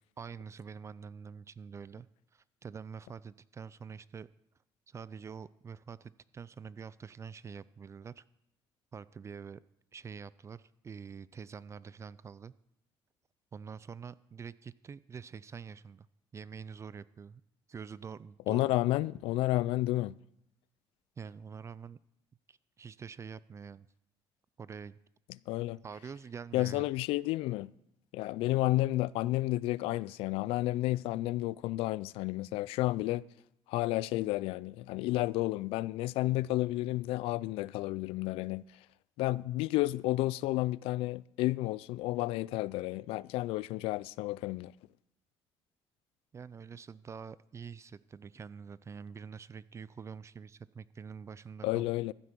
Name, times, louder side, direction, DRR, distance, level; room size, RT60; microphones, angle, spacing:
voice 1, 0.2-4.3 4.9-8.2 8.9-9.6 9.9-12.5 13.5-16.1 16.3-17.4 17.7-18.8 21.2-22.0 22.5-23.9 24.6-25.0 25.8-26.9 46.3-51.9, right 6 dB, 30° right, 0.4 m, -46 dB
voice 2, 18.5-20.2 25.5-25.8 26.5-27.7 28.1-33.2 33.7-38.6 39.2-44.7 51.6-52.1, left 17 dB, 85° left, 0.4 m, -31 dB
14.5 x 8.0 x 6.0 m
cardioid pair, 100°, 9 cm